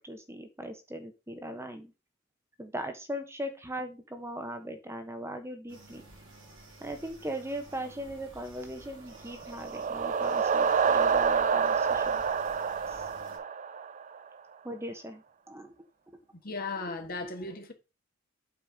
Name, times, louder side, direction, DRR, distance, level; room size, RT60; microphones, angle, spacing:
voice 1, 0.0-1.9 2.6-6.0 6.8-12.2 12.9-13.0 14.6-15.2 15.5-15.7, right 1 dB, 15° right, 1.1 m, -39 dB
sound 1, 5.7-13.4, right 2 dB, 90° right, 4.3 m, -52 dB
sound 2, 9.3-14.2, right 6 dB, 40° right, 0.4 m, -27 dB
voice 2, 16.4-17.7, left 3 dB, 45° left, 1.7 m, -36 dB
8.6 x 4.5 x 5.1 m
head